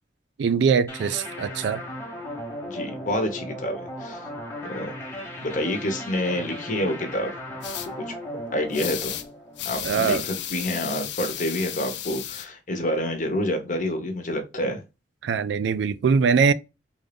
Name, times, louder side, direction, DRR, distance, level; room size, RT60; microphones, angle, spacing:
voice 1, 0.4-1.8 9.8-10.3 15.2-16.5, right 6 dB, 70° right, 0.3 m, -22 dB
sound 1, 0.9-10.2, equal, 15° left, 0.8 m, -36 dB
voice 2, 2.7-4.3 4.6-4.9 5.4-7.3 8.0-8.1 8.5-9.1 9.6-14.8, left 1 dB, 40° left, 0.9 m, -28 dB
sound 2, 7.6-7.9 8.7-9.3 9.6-12.4, left 11 dB, 70° left, 0.5 m, -33 dB
3.6 x 2.5 x 3.3 m
head